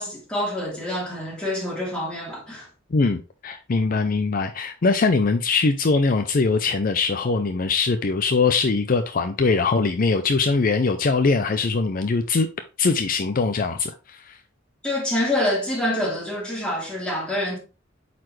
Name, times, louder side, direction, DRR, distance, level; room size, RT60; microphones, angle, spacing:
voice 1, 0.0-2.7 14.8-17.6, left 1 dB, 5° left, 3.0 m, -26 dB
voice 2, 2.9-12.5 12.8-14.4, left 4 dB, 45° left, 0.5 m, -22 dB
8.7 x 4.2 x 3.2 m
head